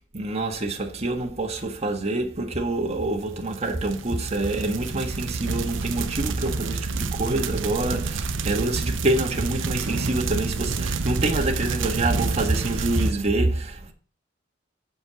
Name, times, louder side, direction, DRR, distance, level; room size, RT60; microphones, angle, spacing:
voice 1, 0.1-13.9, right 2 dB, 35° right, 1.6 m, -26 dB
sound 1, 3.3-13.1, right 3 dB, 80° right, 0.9 m, -28 dB
8.1 x 6.5 x 7.7 m
head